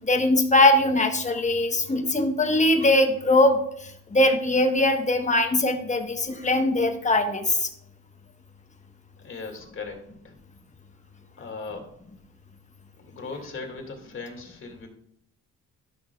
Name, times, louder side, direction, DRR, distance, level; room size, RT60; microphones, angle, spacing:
voice 1, 0.1-3.6 4.1-7.7, left 2 dB, 25° left, 5 dB, 1.1 m, -21 dB
voice 2, 9.2-10.0 10.2-10.3 11.4-11.9 13.0-14.9, left 4 dB, 40° left, 2 dB, 2.2 m, -38 dB
12.0 x 6.3 x 2.3 m, 0.72 s
cardioid pair, 90°, 30 cm